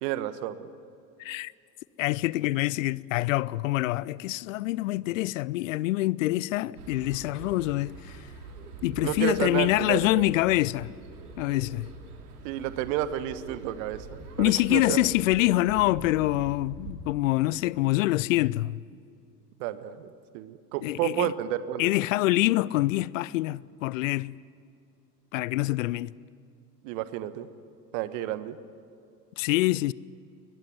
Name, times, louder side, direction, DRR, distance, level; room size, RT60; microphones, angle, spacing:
voice 1, 0.0-0.7 9.0-10.2 12.4-15.1 19.6-21.9 26.8-27.5 27.9-28.6, right 12 dB, 50° right, 1.4 m, -31 dB
voice 2, 1.2-1.5 2.0-8.3 8.8-10.9 11.4-11.9 14.4-18.8 20.8-21.3 21.8-24.3 25.3-26.1 29.4-29.9, left 18 dB, 55° left, 0.6 m, -25 dB
sound 1, 6.7-17.1, right 4 dB, 65° right, 3.1 m, -44 dB
21.5 x 20.5 x 9.4 m
figure-of-eight pair, 75°, 49 cm